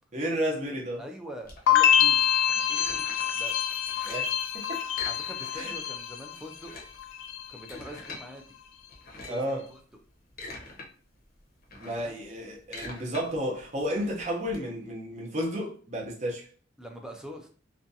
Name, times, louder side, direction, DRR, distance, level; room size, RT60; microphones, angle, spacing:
voice 1, 0.1-1.0 4.0-4.8 5.5-5.7 9.3-9.7 11.8-16.5, equal, 35° right, 0.6 m, -32 dB
voice 2, 1.0-2.2 2.5-3.0 3.3-3.5 5.1-6.9 7.5-8.6 9.1-9.8 11.7-12.1 16.8-17.5, equal, 5° right, 0.3 m, -44 dB
sound 1, 1.4-3.4 3.7-4.4 4.9-5.8 6.0-6.1 6.5-8.3 8.9-9.5 10.1-10.9 11.2-14.6, left 2 dB, 50° left, 0.7 m, -44 dB
sound 2, 1.7-6.7 7.0-7.6, left 10 dB, 80° left, 0.3 m, -26 dB
2.5 x 2.3 x 2.6 m
head